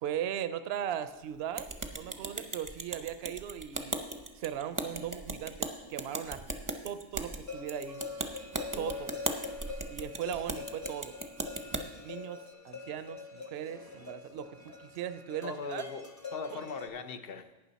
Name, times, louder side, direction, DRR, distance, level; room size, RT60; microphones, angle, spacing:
voice 1, 0.0-4.0 4.4-6.4 6.8-8.0 8.8-9.1 9.9-11.1 12.0-15.8 16.5-16.6, right 10 dB, 70° right, 12 dB, 0.8 m, -38 dB
sound 1, 1.6-11.8, right 2 dB, 20° right, 0.6 m, -38 dB
sound 2, 7.5-16.9, left 4 dB, 15° left, 0.9 m, -44 dB
voice 2, 8.7-9.1 15.4-17.5, left 4 dB, 60° left, 10 dB, 0.9 m, -40 dB
11.5 x 8.9 x 4.1 m, 1.1 s
omnidirectional pair, 1.1 m